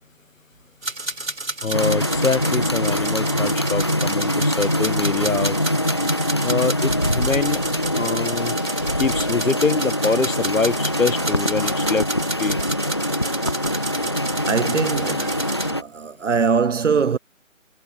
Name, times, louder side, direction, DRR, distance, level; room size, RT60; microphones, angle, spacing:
sound 1, 0.8-15.7, right 2 dB, 80° right, 5.0 m, -31 dB
voice 1, 1.6-5.6 6.4-7.6 7.9-8.6 9.0-12.1 12.4-12.6, left 4 dB, 80° left, 1.4 m, -24 dB
sound 2, 1.7-15.8, equal, 20° left, 0.6 m, -23 dB
voice 2, 14.4-17.2, right 5 dB, 65° right, 1.0 m, -22 dB
figure-of-eight pair, 155°, 40 cm